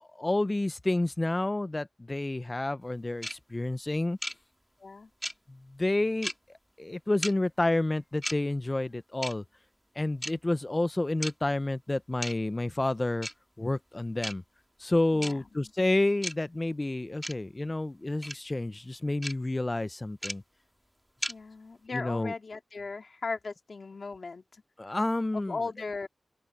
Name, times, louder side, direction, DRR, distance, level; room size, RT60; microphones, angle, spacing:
voice 1, 0.0-4.2 5.5-6.3 6.8-9.4 10.0-13.3 13.6-14.4 14.8-20.4 21.9-22.3 24.8-25.6, left 2 dB, 30° left, 0.9 m, -29 dB
sound 1, 3.2-3.3 4.2-4.3 5.2-5.3 6.2-6.3 7.2-7.3 8.2-8.3 9.2-9.3 10.2-10.3 11.2-11.3 12.2-12.3 13.2-13.3 14.2-14.3 15.2-15.3 16.2-16.3 17.2-17.3 18.2-18.3 19.2-19.3 20.2-20.3 21.2-21.3, equal, ahead, 3.6 m, -34 dB
voice 2, 15.1-15.7 21.3-24.6 25.3-26.1, left 4 dB, 65° left, 3.4 m, -38 dB
open air
cardioid pair, 45°, 0 cm